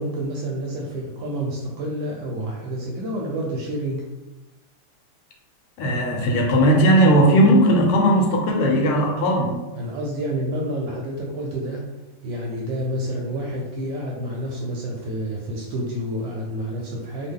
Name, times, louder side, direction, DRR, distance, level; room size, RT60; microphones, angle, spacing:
voice 1, 0.0-4.0 9.8-11.8 12.2-17.3, right 1 dB, 75° right, -1 dB, 1.1 m, -29 dB
voice 2, 5.8-9.6, right 1 dB, 80° left, 1 dB, 1.5 m, -17 dB
3.4 x 2.2 x 3.5 m, 1.1 s
omnidirectional pair, 2.4 m